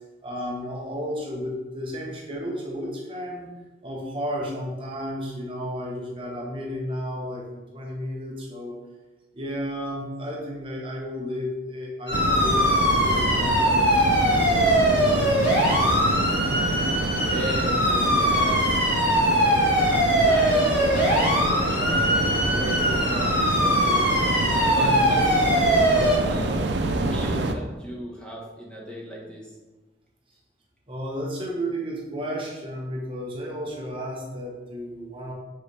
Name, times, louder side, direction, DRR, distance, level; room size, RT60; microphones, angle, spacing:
voice 1, 0.2-3.5 3.8-8.8 9.3-14.2 14.5-14.8 24.7-25.1 30.9-35.3, equal, 30° right, -2 dB, 1.0 m, -33 dB
sound 1, 12.1-26.2, equal, 55° left, 2.1 m, -22 dB
sound 2, 12.1-27.5, right 2 dB, 80° right, 0.6 m, -27 dB
voice 2, 17.1-18.9 19.7-24.2 24.7-26.6 26.9-29.5, right 1 dB, 5° left, -4 dB, 1.2 m, -35 dB
7.5 x 4.0 x 3.4 m, 1.2 s
head